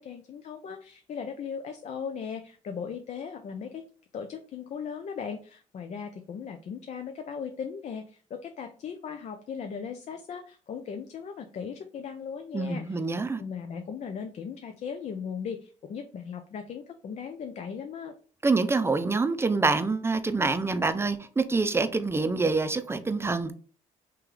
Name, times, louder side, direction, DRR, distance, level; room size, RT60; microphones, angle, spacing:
voice 1, 0.0-3.8 4.1-13.0 13.4-18.1, left 6 dB, 55° left, 0.5 m, -38 dB
voice 2, 12.5-13.4 18.4-23.5, right 3 dB, 20° right, 0.5 m, -26 dB
3.1 x 2.9 x 3.7 m
supercardioid pair, 70°, 14 cm